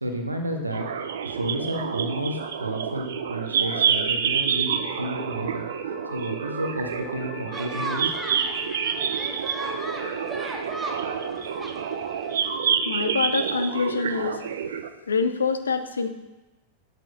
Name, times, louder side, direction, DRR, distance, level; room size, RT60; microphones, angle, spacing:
voice 1, 0.0-0.9 1.2-5.6 6.1-8.1, right 1 dB, 85° right, 4 dB, 0.8 m, -31 dB
sound 1, 0.7-14.9, right 7 dB, 60° right, 0.4 m, -28 dB
Wind instrument woodwind instrument, 3.3-13.7, left 10 dB, 40° left, 0.8 m, -45 dB
sound 2, 7.5-12.6, right 2 dB, 10° right, 0.7 m, -37 dB
voice 2, 12.8-14.4 15.1-16.1, left 4 dB, 75° left, 9 dB, 0.4 m, -25 dB
8.1 x 5.9 x 2.6 m, 1.1 s
figure-of-eight pair, 90°, 0 cm